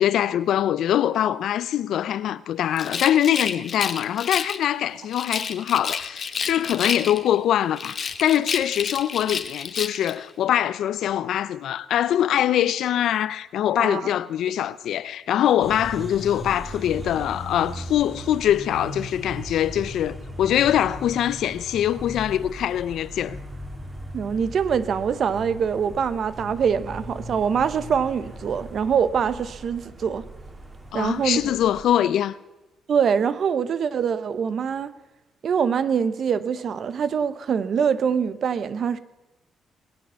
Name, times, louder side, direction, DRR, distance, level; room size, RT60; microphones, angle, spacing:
voice 1, 0.0-23.4 30.9-32.4, left 11 dB, 75° left, 0.5 m, -23 dB
Rattle, 2.7-4.7 5.1-7.4 7.7-10.2, left 6 dB, 45° left, 1.0 m, -30 dB
voice 2, 13.8-14.1 24.1-30.2 30.9-31.4 32.9-34.9 35.4-39.0, right 7 dB, 55° right, 0.8 m, -24 dB
sound 1, 15.6-31.8, right 1 dB, 20° right, 2.2 m, -38 dB
20.5 x 7.7 x 6.9 m
cardioid pair, 90°, 0 cm